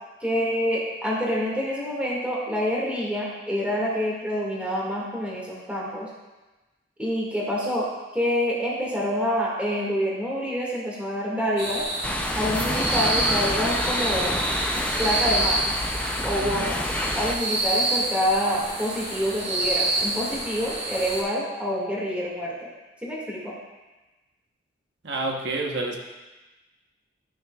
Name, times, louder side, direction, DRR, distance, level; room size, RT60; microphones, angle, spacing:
voice 1, 0.2-6.1 7.0-7.8 8.1-11.8 12.4-14.3 15.0-15.6 16.2-16.8 17.2-22.7 23.0-23.5, equal, 5° right, -5 dB, 2.0 m, -27 dB
sound 1, 11.6-21.2, right 2 dB, 40° right, 1.9 m, -28 dB
sound 2, 12.0-17.3, left 1 dB, 10° left, 0.5 m, -28 dB
voice 2, 25.0-26.0, right 2 dB, 70° right, 1 dB, 1.1 m, -29 dB
12.5 x 6.2 x 2.4 m, 1.1 s
head